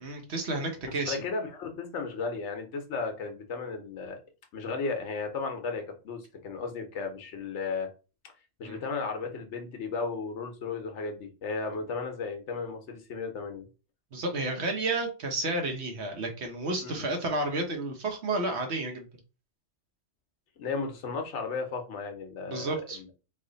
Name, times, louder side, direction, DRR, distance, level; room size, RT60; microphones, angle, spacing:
voice 1, 0.0-1.2 8.6-8.8 14.1-19.1 22.5-23.0, right 2 dB, 65° right, 3 dB, 1.1 m, -31 dB
voice 2, 1.1-4.2 4.5-7.9 8.6-13.7 16.8-17.0 20.6-23.1, left 4 dB, 75° left, 4 dB, 1.1 m, -35 dB
3.2 x 2.4 x 3.8 m, 0.33 s
omnidirectional pair, 1.2 m